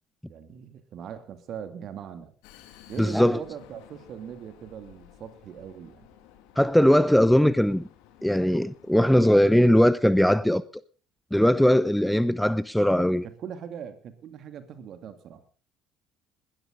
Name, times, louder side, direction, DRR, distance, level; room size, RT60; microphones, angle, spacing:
voice 1, 0.3-2.3 2.9-6.1 13.0-15.5, right 8 dB, 55° right, 2.5 m, -41 dB
Vehicle, 2.4-9.7, left 11 dB, 75° left, 2.3 m, -54 dB
voice 2, 3.0-3.4 6.6-7.8 8.2-10.6 11.3-13.3, equal, 5° left, 0.7 m, -20 dB
21.0 x 12.5 x 3.9 m
hypercardioid pair, 60°, 0 cm